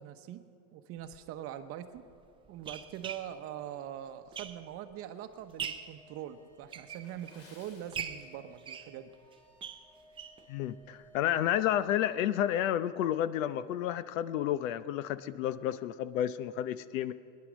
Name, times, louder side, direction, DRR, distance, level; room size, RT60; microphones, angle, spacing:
voice 1, 0.0-2.1 2.5-9.1, right 10 dB, 35° right, 9 dB, 0.9 m, -43 dB
sound 1, 1.1-1.2 2.0-4.9 5.3-6.0 6.5-7.5 7.9-10.5 10.8-10.9 11.2-11.3 11.7-11.8, right 7 dB, 15° right, 0.5 m, -42 dB
sound 2, 6.0-12.6, right 1 dB, 15° left, 2.9 m, -61 dB
Water / Splash splatter, 6.9-8.8 9.1-9.3 9.9-10.1 10.6-10.7, left 2 dB, 35° left, 2.9 m, -60 dB
voice 2, 10.5-17.1, left 11 dB, 75° left, 15 dB, 0.8 m, -31 dB
22.0 x 10.5 x 6.3 m, 2.4 s
supercardioid pair, 145°, 39 cm